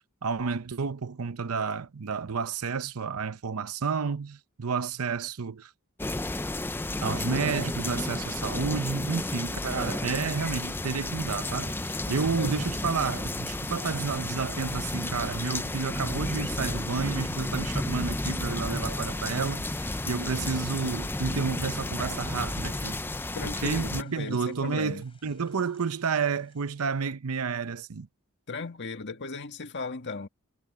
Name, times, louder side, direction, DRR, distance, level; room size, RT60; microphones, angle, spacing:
voice 1, 0.2-5.7 7.0-23.0 23.4-28.1, right 5 dB, 75° right, 0.7 m, -31 dB
sound 1, 6.0-24.0, left 2 dB, 10° left, 0.5 m, -32 dB
sound 2, 11.8-27.1, left 5 dB, 25° left, 5.3 m, -63 dB
voice 2, 12.4-12.7 23.3-25.0 28.5-30.3, left 4 dB, 55° left, 1.8 m, -37 dB
head